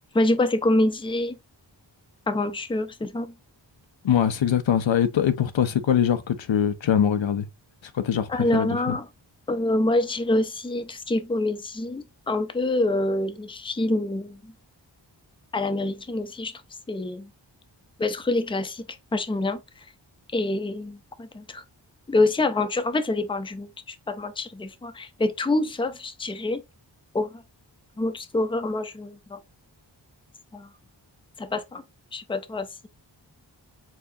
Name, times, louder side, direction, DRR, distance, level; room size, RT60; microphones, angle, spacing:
voice 1, 0.1-1.4 2.3-3.3 8.3-9.1 9.5-14.5 15.5-16.5 16.9-17.3 18.0-18.8 19.1-19.6 20.3-21.6 22.1-26.6 27.1-27.3 28.0-29.4 30.5-30.7 31.4-31.8 32.1-32.9, left 2 dB, 10° left, 0.5 m, -26 dB
voice 2, 4.0-7.5 7.9-9.0, left 9 dB, 80° left, 0.7 m, -23 dB
4.6 x 3.6 x 2.7 m
wide cardioid pair, 75°, 45 cm